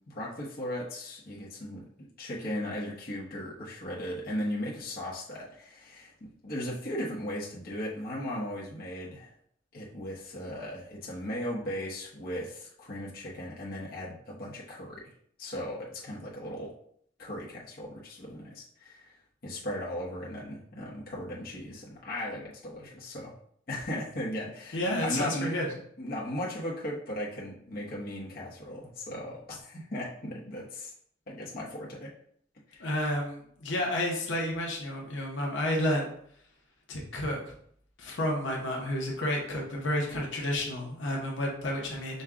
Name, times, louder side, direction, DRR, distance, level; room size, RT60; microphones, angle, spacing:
voice 1, 0.1-9.3 9.7-15.0 15.4-16.7 17.2-19.1 19.4-23.3 23.7-25.5 26.0-30.9 31.3-32.1 32.7-32.8, left 1 dB, 50° left, -5 dB, 1.0 m, -37 dB
voice 2, 24.7-25.7 32.8-36.1 36.9-37.4 38.0-42.2, left 1 dB, 80° left, -2 dB, 1.0 m, -30 dB
5.3 x 2.3 x 3.6 m, 0.65 s
head